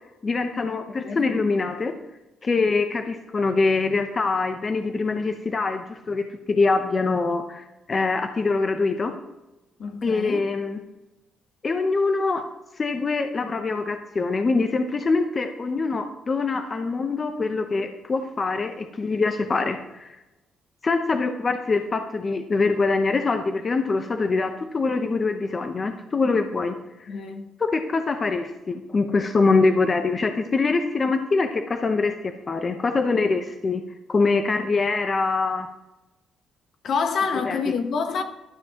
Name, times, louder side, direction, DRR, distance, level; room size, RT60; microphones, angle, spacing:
voice 1, 0.2-1.9 2.4-9.2 10.0-10.8 11.6-12.5 12.8-20.2 20.8-26.7 27.0-27.1 27.6-33.8 34.1-35.7 37.4-37.6, left 3 dB, 35° left, 0.8 m, -24 dB
voice 2, 9.8-10.4 27.1-27.5 36.8-38.2, left 5 dB, 65° left, 1.1 m, -27 dB
12.5 x 7.0 x 2.9 m
cardioid pair, 90°, 0 cm